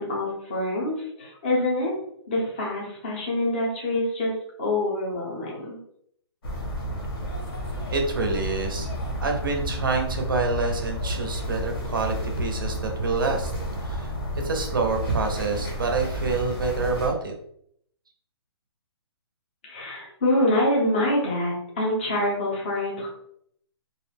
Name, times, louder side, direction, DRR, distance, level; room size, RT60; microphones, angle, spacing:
voice 1, 0.0-1.9 2.3-4.3 4.6-5.8 19.7-23.1, left 1 dB, 25° left, -3 dB, 0.5 m, -25 dB
sound 1, 6.4-17.1, equal, 60° left, 0.8 m, -31 dB
voice 2, 7.9-8.9 9.2-13.5 13.8-14.1 14.4-17.3, right 3 dB, 50° right, 3 dB, 0.4 m, -27 dB
2.3 x 2.0 x 3.2 m, 0.70 s
hypercardioid pair, 180°, 14 cm